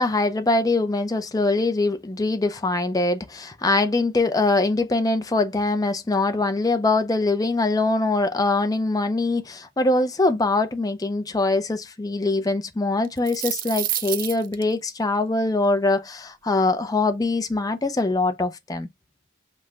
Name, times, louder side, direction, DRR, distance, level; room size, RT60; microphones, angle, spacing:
voice 1, 0.0-18.9, left 2 dB, 20° left, 0.4 m, -23 dB
sound 1, 13.0-14.6, right 13 dB, 40° right, 0.4 m, -28 dB
5.3 x 2.1 x 3.8 m
head